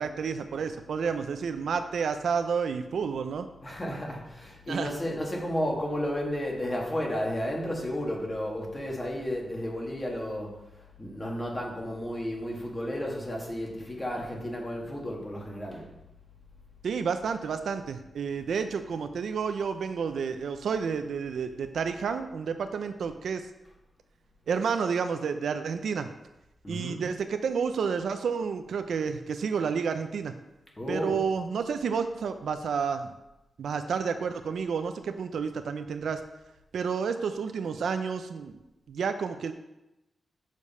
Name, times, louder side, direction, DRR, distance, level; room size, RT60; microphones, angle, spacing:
voice 1, 0.0-3.5 4.7-4.9 16.8-23.4 24.5-26.1 26.7-30.3 30.9-33.1 33.6-36.2 36.7-38.6 38.9-39.5, right 6 dB, 75° right, 8 dB, 0.5 m, -30 dB
voice 2, 3.6-15.9 26.6-27.1 30.8-31.2, equal, 20° left, -1 dB, 1.6 m, -33 dB
6.4 x 5.2 x 5.5 m, 0.94 s
wide cardioid pair, 145°, 0 cm